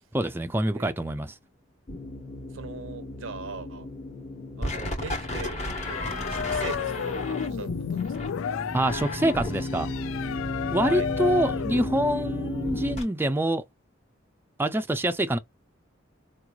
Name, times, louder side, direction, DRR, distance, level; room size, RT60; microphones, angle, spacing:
voice 1, 0.1-1.3 8.7-9.9 10.7-13.6 14.6-15.4, right 1 dB, 10° right, 0.4 m, -25 dB
sound 1, 1.9-13.0, left 1 dB, 35° left, 1.3 m, -33 dB
voice 2, 2.5-3.9 4.6-6.0 6.3-8.4 10.9-11.1, right 4 dB, 90° right, 0.8 m, -40 dB
sound 2, 5.6-12.9, left 8 dB, 90° left, 0.3 m, -33 dB
4.5 x 3.0 x 2.3 m
head